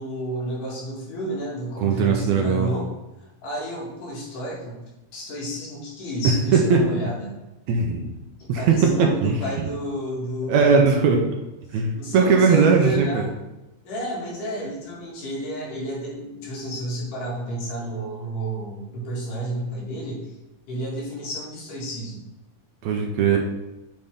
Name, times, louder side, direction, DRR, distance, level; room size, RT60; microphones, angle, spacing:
voice 1, 0.0-2.9 3.4-4.8 5.1-7.3 8.4-11.0 11.7-13.3 13.9-20.3 20.7-22.2, right 1 dB, 90° left, -5 dB, 3.6 m, -31 dB
voice 2, 1.8-2.7 6.5-6.9 7.7-8.1 8.5-9.4 10.5-11.2 11.7-13.2 22.8-23.4, right 5 dB, 75° right, 2 dB, 1.8 m, -19 dB
7.9 x 4.9 x 3.7 m, 0.98 s
omnidirectional pair, 3.6 m